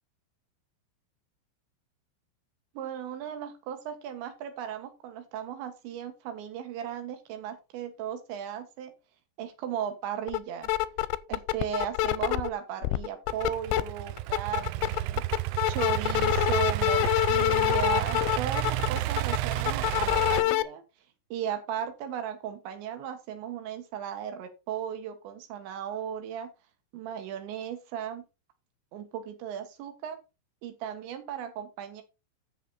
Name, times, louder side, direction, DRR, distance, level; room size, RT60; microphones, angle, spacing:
voice 1, 2.8-8.9 9.4-10.7 11.3-15.2 15.7-20.8 21.3-26.5 26.9-28.2 28.9-30.2 30.6-32.0, right 9 dB, 75° right, 8 dB, 3.4 m, -36 dB
sound 1, 10.3-10.4 10.6-12.5 12.8-13.8 14.2-20.6, left 17 dB, 90° left, 3.1 m, -26 dB
Idling / Accelerating revving vroom, 13.3-20.4, right 15 dB, 90° right, 3.3 m, -31 dB
9.3 x 7.1 x 4.0 m, 0.28 s
omnidirectional pair, 5.5 m